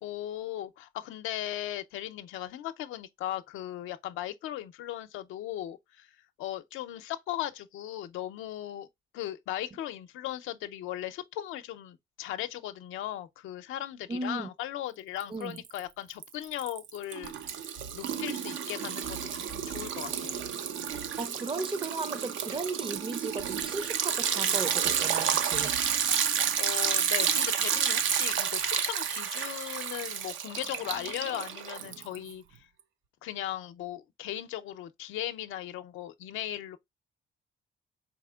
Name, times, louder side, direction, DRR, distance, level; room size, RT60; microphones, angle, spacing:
voice 1, 0.0-6.1 6.4-8.9 9.1-17.5 17.9-20.4 26.6-32.7 33.2-36.8, left 12 dB, 90° left, 0.5 m, -37 dB
voice 2, 14.1-14.5 15.3-15.6 21.2-25.8, right 3 dB, 25° right, 0.5 m, -36 dB
Liquid, 15.2-15.8 16.1-32.3, right 8 dB, 80° right, 0.6 m, -30 dB
4.2 x 4.0 x 2.3 m
cardioid pair, 90°, 20 cm